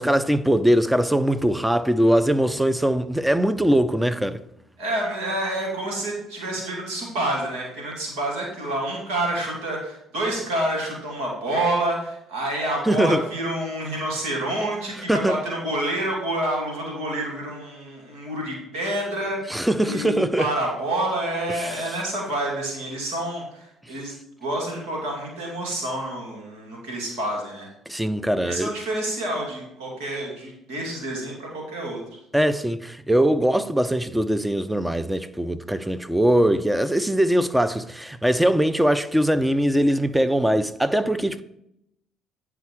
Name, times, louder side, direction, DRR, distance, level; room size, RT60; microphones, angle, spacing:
voice 1, 0.0-4.4 12.9-13.2 15.1-15.4 19.5-20.5 21.6-21.7 27.9-28.7 32.3-41.4, right 1 dB, 5° right, 0.6 m, -21 dB
voice 2, 4.8-24.1 24.4-27.7 28.4-32.0, right 1 dB, 75° right, 2.6 m, -28 dB
9.4 x 4.9 x 4.6 m
hypercardioid pair, 60°, 0 cm